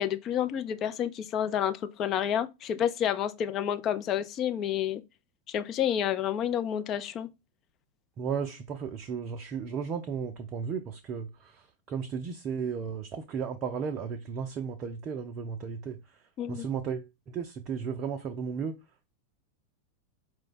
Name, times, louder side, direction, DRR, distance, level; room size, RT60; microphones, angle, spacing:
voice 1, 0.0-5.0 5.5-7.3 16.4-16.7, left 9 dB, 35° left, 0.4 m, -29 dB
voice 2, 8.2-18.7, right 6 dB, 35° right, 0.4 m, -35 dB
4.4 x 2.2 x 4.0 m
figure-of-eight pair, 90°, 0 cm